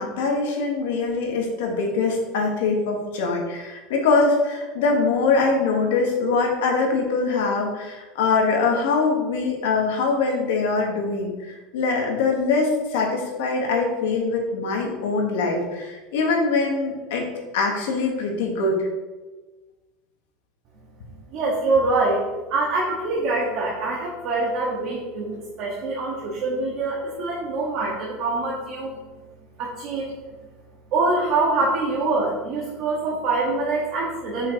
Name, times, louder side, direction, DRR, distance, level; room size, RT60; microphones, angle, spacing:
voice 1, 0.0-17.3 17.5-18.9, left 4 dB, 75° left, 1 dB, 1.4 m, -23 dB
voice 2, 21.3-22.2 22.5-29.0 29.6-30.1 30.9-34.5, right 3 dB, 40° right, -4 dB, 1.1 m, -24 dB
5.6 x 3.8 x 4.6 m, 1.2 s
supercardioid pair, 180°, 0 cm